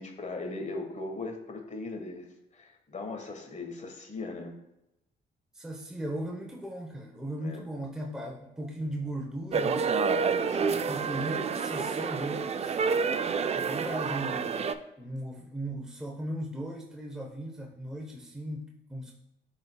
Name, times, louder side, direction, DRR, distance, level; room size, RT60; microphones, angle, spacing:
voice 1, 0.0-2.3 2.5-4.5 7.4-7.6 10.5-10.8 13.6-14.1, left 2 dB, 35° left, 4 dB, 1.4 m, -39 dB
voice 2, 5.5-10.0 10.7-12.8 13.5-19.1, right 1 dB, 5° right, -1 dB, 0.8 m, -37 dB
sound 1, 9.5-14.7, right 5 dB, 35° right, 0.4 m, -28 dB
10.5 x 4.0 x 2.3 m, 0.89 s
cardioid pair, 90°, 20 cm